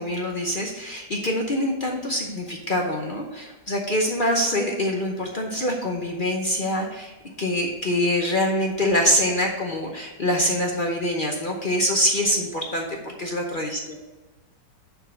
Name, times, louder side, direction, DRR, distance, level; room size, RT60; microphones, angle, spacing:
voice 1, 0.0-7.1 7.4-13.8, left 1 dB, 45° left, 0 dB, 0.6 m, -25 dB
6.5 x 4.8 x 6.2 m, 1.1 s
omnidirectional pair, 1.9 m